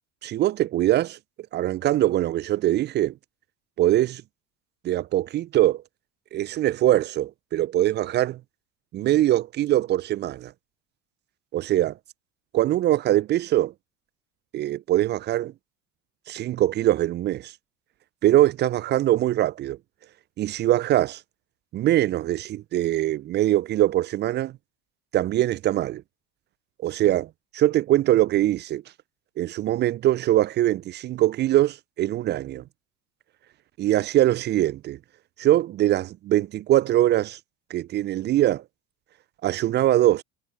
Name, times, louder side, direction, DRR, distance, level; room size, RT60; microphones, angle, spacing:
voice 1, 0.2-1.2 1.5-3.1 3.8-4.2 4.8-5.8 6.3-8.4 8.9-10.5 11.5-12.0 12.5-13.7 14.5-15.5 16.3-17.5 18.2-19.8 20.4-21.2 21.7-24.5 25.1-26.0 26.8-28.8 29.4-32.6 33.8-35.0 35.4-37.4 37.7-38.6 39.4-40.2, right 14 dB, 25° right, 0.4 m, -22 dB
figure-of-eight pair, 70°, 50 cm